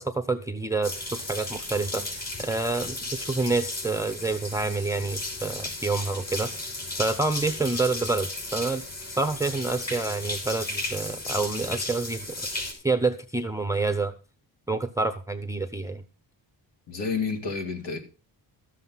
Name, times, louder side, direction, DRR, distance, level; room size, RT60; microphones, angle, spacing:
voice 1, 0.0-6.7 7.0-8.8 9.2-12.4 12.8-14.1 14.7-16.0, right 3 dB, 5° right, 0.7 m, -28 dB
sound 1, 0.8-12.7, left 2 dB, 35° left, 5.9 m, -35 dB
voice 2, 16.9-18.0, left 5 dB, 70° left, 2.8 m, -30 dB
13.5 x 7.6 x 5.7 m
wide cardioid pair, 155°, 43 cm